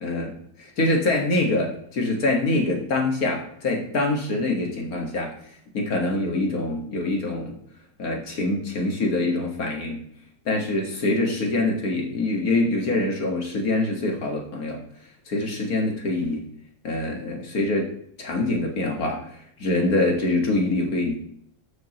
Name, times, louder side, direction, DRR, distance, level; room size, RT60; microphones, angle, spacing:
voice 1, 0.0-0.3 0.8-5.3 5.7-7.5 8.0-10.0 10.5-14.8 15.3-16.4 16.8-17.9 18.2-19.2 19.6-21.2, left 2 dB, 50° left, 1 dB, 1.9 m, -24 dB
13.0 x 6.4 x 2.9 m, 0.68 s
omnidirectional pair, 2.1 m